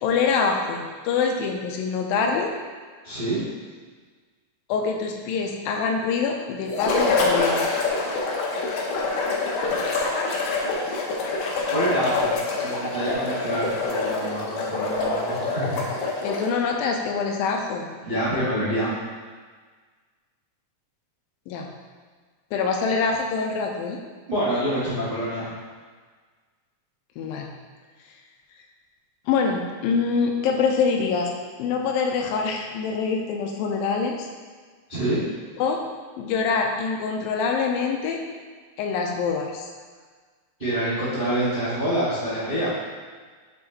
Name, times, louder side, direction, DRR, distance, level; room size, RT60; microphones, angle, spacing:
voice 1, 0.0-2.5 4.7-7.6 16.2-17.9 21.5-21.7 22.5-24.0 27.2-27.5 29.3-31.3 31.6-34.3 35.6-35.8 36.2-38.2 38.8-39.7, left 5 dB, 90° left, 2 dB, 2.4 m, -25 dB
voice 2, 3.0-3.4 11.7-15.9 18.0-18.9 24.3-25.5 34.9-35.2 40.6-42.7, right 1 dB, 45° right, -12 dB, 0.6 m, -26 dB
sound 1, 6.7-16.6, left 3 dB, 70° left, 2.2 m, -26 dB
7.0 x 5.7 x 3.0 m, 1.5 s
omnidirectional pair, 4.1 m